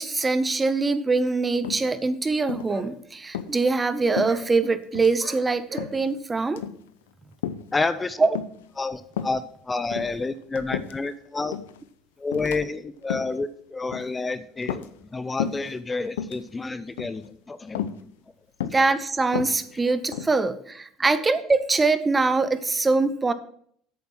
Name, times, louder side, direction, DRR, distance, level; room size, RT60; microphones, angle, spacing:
voice 1, 0.0-6.6 8.2-8.3 18.6-23.3, right 3 dB, 20° right, 13 dB, 0.8 m, -23 dB
sound 1, 1.6-2.1 2.5-2.8 3.2-3.5 4.2-4.7 4.9-5.2 5.8-6.1 6.5-6.8 7.4-7.7 8.4-8.7 9.1-9.4 9.8-11.1 11.5-11.8 12.3-12.6 13.0-13.4 13.9-14.2 14.6-15.1 15.4-15.7 16.1-16.4 17.0-17.3 17.8-18.0 18.6-18.9 19.3-20.4, left 9 dB, 90° left, 0.6 m, -32 dB
sound 2, 2.7-2.9 3.4-3.5 3.8-3.9 4.2-4.4 5.2-5.4 5.6-5.9, right 3 dB, 60° right, 2.7 m, -38 dB
voice 2, 7.7-8.2 8.8-11.6 12.2-17.8, left 3 dB, 20° left, 13 dB, 0.6 m, -29 dB
8.6 x 6.9 x 6.1 m, 0.63 s
hypercardioid pair, 80°, 0 cm